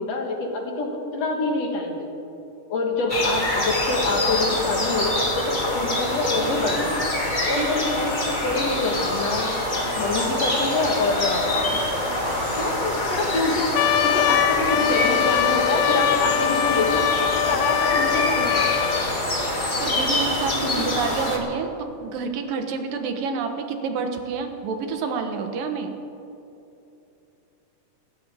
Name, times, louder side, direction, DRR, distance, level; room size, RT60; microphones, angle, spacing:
voice 1, 0.0-2.1 2.7-7.1 7.5-11.8 12.6-13.7 14.0-17.1 17.3-18.9 20.6-20.9, left 3 dB, 55° left, 2 dB, 2.4 m, -26 dB
sound 1, 3.1-21.4, left 1 dB, 20° left, 1.2 m, -25 dB
sound 2, 6.2-12.8, right 2 dB, 60° right, 3.3 m, -36 dB
Trumpet, 13.7-19.1, left 11 dB, 85° left, 1.5 m, -23 dB
voice 2, 19.8-25.9, right 5 dB, 85° right, 5 dB, 2.9 m, -28 dB
28.0 x 14.0 x 3.5 m, 2.8 s
omnidirectional pair, 3.8 m